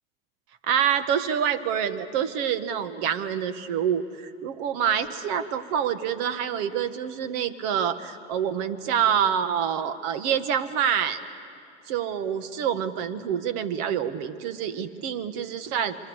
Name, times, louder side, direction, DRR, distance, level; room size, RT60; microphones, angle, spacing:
voice 1, 0.6-11.2 11.9-16.0, right 8 dB, 60° right, 12 dB, 1.6 m, -26 dB
27.0 x 24.0 x 8.0 m, 2.4 s
hypercardioid pair, 105°, 33 cm